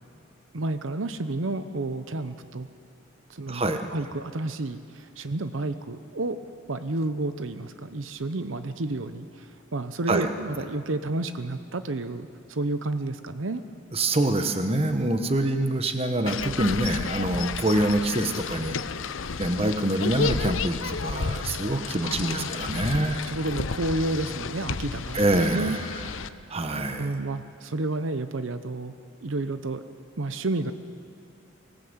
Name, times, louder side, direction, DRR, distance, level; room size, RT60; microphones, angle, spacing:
voice 1, 0.5-2.7 3.3-6.4 6.7-13.6 22.0-22.5 23.2-25.8 27.0-28.9 29.2-29.8 30.2-30.7, right 2 dB, 80° right, 10 dB, 0.8 m, -31 dB
voice 2, 3.5-3.8 10.1-10.3 13.9-18.8 19.4-23.2 25.1-25.8 26.5-27.1, right 1 dB, 30° right, 7 dB, 1.2 m, -25 dB
sound 1, 16.3-26.3, left 5 dB, 80° left, 0.7 m, -32 dB
24.5 x 18.0 x 8.1 m, 2.4 s
head